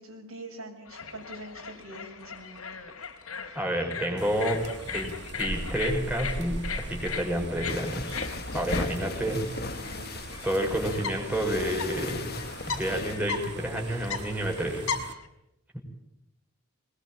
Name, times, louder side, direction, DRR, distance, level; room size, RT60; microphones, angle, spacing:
voice 1, 0.0-2.6 9.9-10.1, right 1 dB, 75° right, 1 dB, 7.4 m, -44 dB
sound 1, 0.9-15.3, left 6 dB, 80° left, 3.9 m, -38 dB
voice 2, 3.5-4.6 4.9-8.2 8.5-9.6 10.4-12.3 12.7-14.9 15.7-15.8, right 1 dB, 10° right, 0 dB, 5.3 m, -29 dB
sound 2, 4.2-15.1, right 2 dB, 55° right, 1.6 m, -41 dB
sound 3, 7.7-13.2, left 3 dB, 45° left, 1.4 m, -37 dB
22.0 x 21.5 x 8.9 m, 0.85 s
head